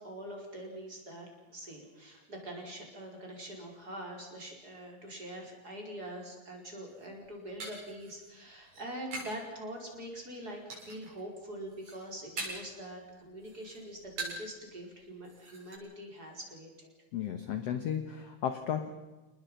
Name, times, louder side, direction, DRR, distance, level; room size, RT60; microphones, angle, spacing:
voice 1, 0.0-16.9, right 1 dB, 25° right, 0 dB, 5.4 m, -44 dB
sound 1, 6.9-9.4 9.8-10.3 10.7-11.2 11.5-12.8 13.1-14.6 14.9-15.0 15.2-15.8, right 2 dB, 50° right, 8.3 m, -43 dB
voice 2, 17.1-18.9, left 9 dB, 60° left, 8 dB, 1.8 m, -34 dB
30.0 x 20.0 x 5.7 m, 1.1 s
omnidirectional pair, 4.1 m